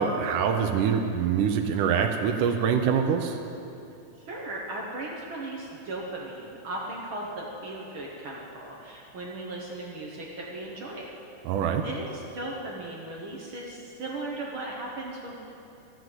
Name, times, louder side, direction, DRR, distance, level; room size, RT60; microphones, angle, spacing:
voice 1, 0.0-3.4 11.5-11.8, right 7 dB, 80° right, 4 dB, 2.3 m, -24 dB
voice 2, 4.2-11.1 11.7-15.3, right 2 dB, 55° right, -2 dB, 1.6 m, -37 dB
13.5 x 7.6 x 7.9 m, 2.7 s
omnidirectional pair, 3.6 m